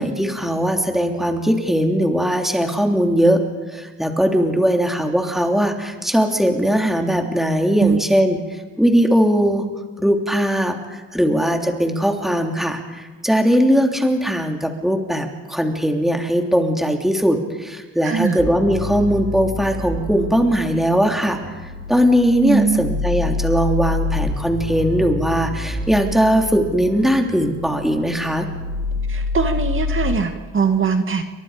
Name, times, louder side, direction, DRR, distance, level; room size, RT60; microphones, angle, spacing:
voice 1, 0.0-3.4 3.7-8.4 8.8-9.6 10.0-21.4 21.9-28.5, equal, ahead, 2 dB, 3.2 m, -19 dB
voice 2, 18.0-18.4 22.4-22.9 29.1-31.2, right 5 dB, 40° right, 5 dB, 2.1 m, -20 dB
sound 1, 18.4-30.1, left 3 dB, 90° right, 7.0 m, -27 dB
29.5 x 24.5 x 5.1 m, 1.3 s
cardioid pair, 90°, 30 cm